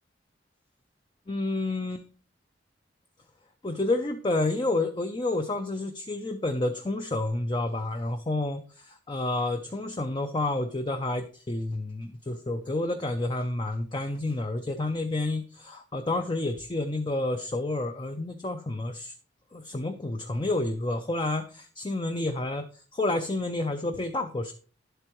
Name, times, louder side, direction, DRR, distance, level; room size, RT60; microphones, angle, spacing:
voice 1, 1.3-2.0 3.6-19.1 19.5-24.5, left 2 dB, 25° left, 6 dB, 0.5 m, -29 dB
10.5 x 8.0 x 3.0 m, 0.39 s
head